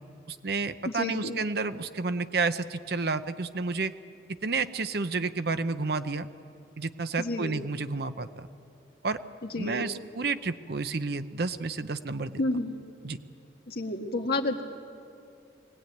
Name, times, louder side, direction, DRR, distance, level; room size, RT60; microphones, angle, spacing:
voice 1, 0.3-3.9 4.4-6.3 6.8-8.5 9.0-9.2 9.6-12.4 13.0-13.2, right 4 dB, 55° right, 11 dB, 0.7 m, -30 dB
voice 2, 0.8-1.4 7.2-7.6 9.4-10.0 12.4-12.7 13.7-14.6, left 2 dB, 55° left, 2 dB, 1.7 m, -30 dB
23.0 x 18.0 x 9.3 m, 2.5 s
head